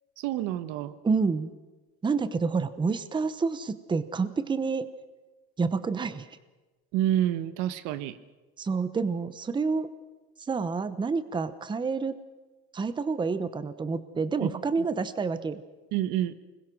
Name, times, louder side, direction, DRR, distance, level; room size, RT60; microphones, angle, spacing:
voice 1, 0.2-1.0 6.9-8.2 14.4-14.5 14.8-14.9 15.9-16.3, right 12 dB, 75° right, 13 dB, 1.3 m, -28 dB
voice 2, 1.0-1.5 2.0-4.9 5.6-6.3 8.6-9.9 10.5-12.2 12.7-15.6, right 4 dB, 15° right, 12 dB, 0.9 m, -28 dB
25.5 x 21.0 x 6.2 m, 1.2 s
cardioid pair, 140°, 30 cm